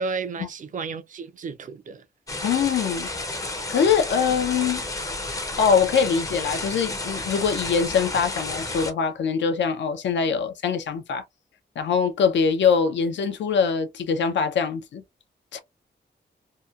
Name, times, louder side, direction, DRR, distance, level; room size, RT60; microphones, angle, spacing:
voice 1, 0.0-2.0, right 4 dB, 45° right, 0.4 m, -32 dB
sound 1, 2.3-8.9, left 2 dB, 20° left, 0.5 m, -31 dB
voice 2, 2.4-3.1 3.4-4.8 5.6-11.2 11.8-15.0 15.5-15.6, left 6 dB, 80° left, 0.5 m, -23 dB
2.8 x 2.1 x 2.3 m
wide cardioid pair, 145°, 19 cm